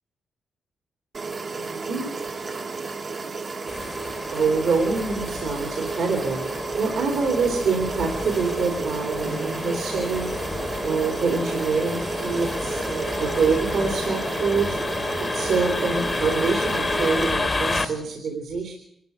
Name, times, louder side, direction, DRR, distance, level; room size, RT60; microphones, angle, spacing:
sound 1, 1.1-17.3, right 4 dB, 35° right, 1.4 m, -32 dB
voice 1, 1.5-2.1 4.3-10.3 10.8-18.7, right 4 dB, 65° right, 2 dB, 3.2 m, -26 dB
sound 2, 3.7-17.8, left 3 dB, 20° left, 1.3 m, -30 dB
25.5 x 13.5 x 8.1 m, 0.75 s
wide cardioid pair, 165°, 0 cm